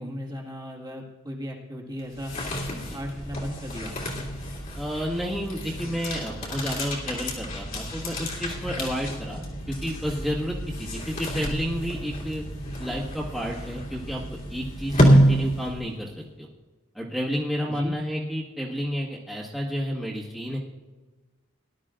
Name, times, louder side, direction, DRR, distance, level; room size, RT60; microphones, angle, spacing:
voice 1, 0.0-2.3 2.9-4.0 17.7-17.9, equal, 20° right, -2 dB, 1.9 m, -36 dB
sound 1, 2.0-16.0, equal, 45° left, 2.5 m, -27 dB
voice 2, 4.8-9.4 9.7-12.4 12.8-16.5 16.9-20.6, equal, ahead, -6 dB, 1.7 m, -31 dB
19.5 x 12.0 x 2.5 m, 1.3 s
head